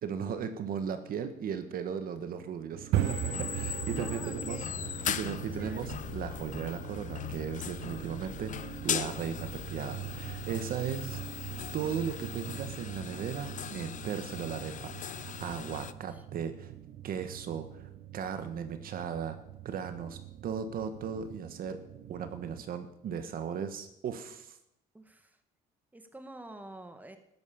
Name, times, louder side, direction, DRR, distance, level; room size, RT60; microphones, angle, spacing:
voice 1, 0.0-4.6 5.1-11.2 11.7-16.7 17.0-19.4 19.6-21.8 22.1-24.6, right 7 dB, 60° right, 9 dB, 1.6 m, -37 dB
sound 1, 2.7-22.6, right 12 dB, 75° right, 0.9 m, -40 dB
sound 2, 2.9-15.9, left 10 dB, 50° left, 0.7 m, -39 dB
voice 2, 3.9-4.7 5.5-5.9 16.1-16.2 24.9-25.4 25.9-27.2, right 2 dB, 10° right, 8 dB, 1.6 m, -47 dB
13.0 x 10.5 x 7.1 m, 0.79 s
cardioid pair, 110°, 17 cm